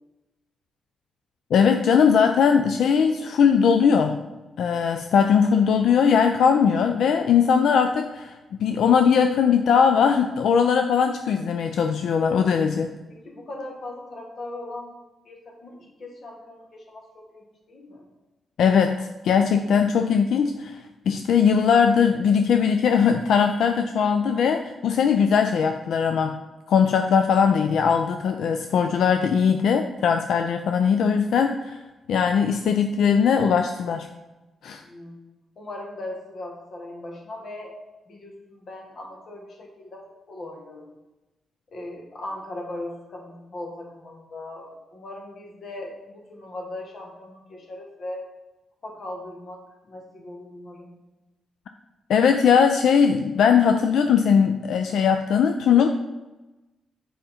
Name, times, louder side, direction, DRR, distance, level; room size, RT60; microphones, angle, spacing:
voice 1, 1.5-4.2 4.6-12.9 18.6-26.4 26.7-31.8 32.1-34.1 34.6-34.8 52.1-55.9, left 6 dB, 70° left, 6 dB, 0.4 m, -20 dB
voice 2, 13.1-14.9 15.2-18.0 34.8-35.2 35.6-37.8 38.1-40.9 41.7-48.2 48.8-50.9, left 1 dB, 45° left, 1 dB, 1.5 m, -39 dB
7.8 x 5.0 x 4.3 m, 1.1 s
wide cardioid pair, 150°, 0 cm